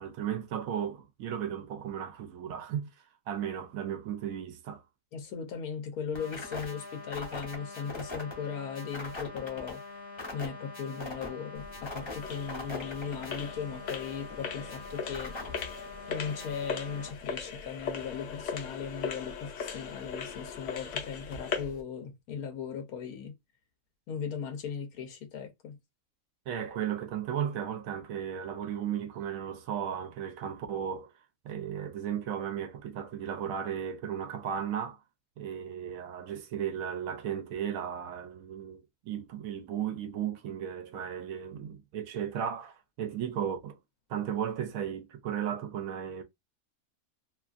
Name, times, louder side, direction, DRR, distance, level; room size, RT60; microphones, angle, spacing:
voice 1, 0.0-4.8 26.5-31.1 31.4-35.0 35.4-43.8 44.1-46.2, right 9 dB, 75° right, 1.0 m, -35 dB
voice 2, 5.1-9.8 10.3-15.4 16.1-23.3 24.1-25.8, left 6 dB, 85° left, 1.2 m, -38 dB
sound 1, 6.1-17.1, left 2 dB, 25° left, 0.7 m, -42 dB
sound 2, 11.5-21.8, left 6 dB, 65° left, 1.0 m, -39 dB
2.9 x 2.4 x 2.4 m
omnidirectional pair, 1.5 m